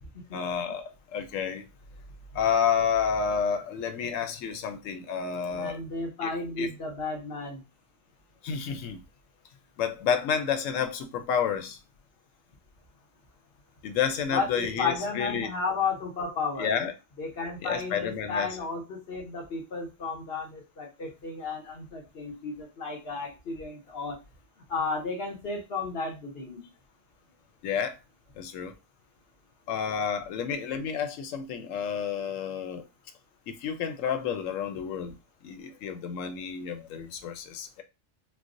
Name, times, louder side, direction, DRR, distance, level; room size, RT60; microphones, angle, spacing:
voice 1, 0.3-0.8 1.1-1.6 2.3-5.8 6.2-6.3 6.6-6.7 8.4-9.0 9.8-11.8 13.8-15.5 16.6-16.9 17.6-18.5 27.6-27.9 28.4-28.7 29.7-32.8 33.5-35.1 35.4-37.8, left 7 dB, 90° left, 1.0 m, -30 dB
voice 2, 5.5-7.6 14.3-16.8 17.2-24.2 24.7-26.6, left 4 dB, 55° left, 1.0 m, -33 dB
4.4 x 2.1 x 2.5 m
omnidirectional pair, 1.3 m